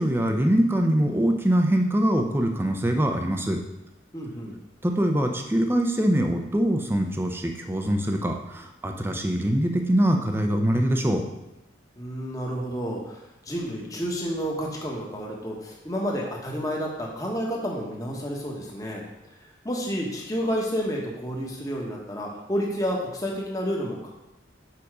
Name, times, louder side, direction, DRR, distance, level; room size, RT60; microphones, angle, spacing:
voice 1, 0.0-3.6 4.8-11.3, right 1 dB, 10° right, 4 dB, 0.6 m, -23 dB
voice 2, 4.1-4.6 12.0-19.0 19.6-24.1, equal, 20° left, -2 dB, 1.2 m, -30 dB
7.0 x 5.2 x 4.9 m, 0.94 s
head